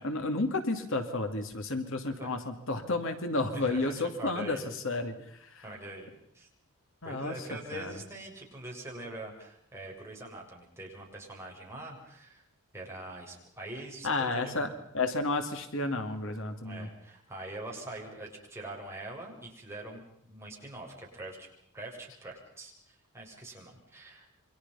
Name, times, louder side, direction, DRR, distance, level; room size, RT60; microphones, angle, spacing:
voice 1, 0.0-5.6 7.0-7.9 14.0-16.9, left 2 dB, 60° left, 6 dB, 2.6 m, -32 dB
voice 2, 3.5-4.6 5.6-6.5 7.0-12.4 12.7-14.8 16.6-21.5 21.7-24.3, right 2 dB, 10° right, -2 dB, 7.5 m, -44 dB
29.0 x 25.0 x 5.7 m, 0.69 s
head